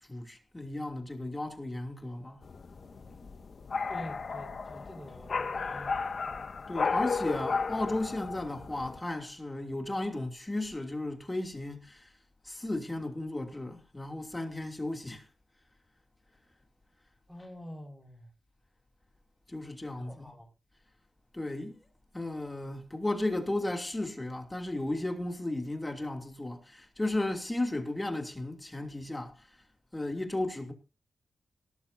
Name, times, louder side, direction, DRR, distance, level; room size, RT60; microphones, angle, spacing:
voice 1, 0.0-2.4 6.7-12.1 12.4-15.3 19.5-20.3 21.3-21.8 22.1-29.6 29.9-30.7, left 2 dB, 15° left, 2.9 m, -34 dB
sound 1, 2.4-9.0, left 4 dB, 55° left, 1.8 m, -34 dB
voice 2, 3.9-6.0 6.2-6.5 17.3-18.3 20.0-20.5, equal, ahead, 5.3 m, -47 dB
18.5 x 13.5 x 2.8 m
wide cardioid pair, 100°, 0 cm